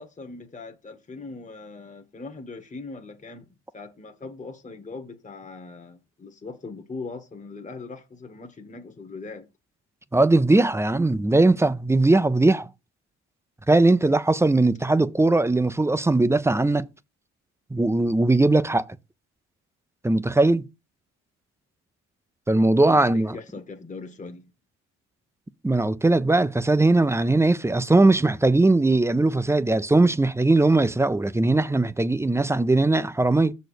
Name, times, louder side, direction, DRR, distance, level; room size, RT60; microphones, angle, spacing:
voice 1, 0.0-3.5 3.7-9.4 22.7-24.5, left 3 dB, 25° left, 1.2 m, -40 dB
voice 2, 10.1-12.7 13.7-16.9 17.7-18.8 20.0-20.6 22.5-23.3 25.6-33.5, right 2 dB, 10° right, 0.5 m, -20 dB
6.6 x 4.2 x 6.6 m
cardioid pair, 90°, 30 cm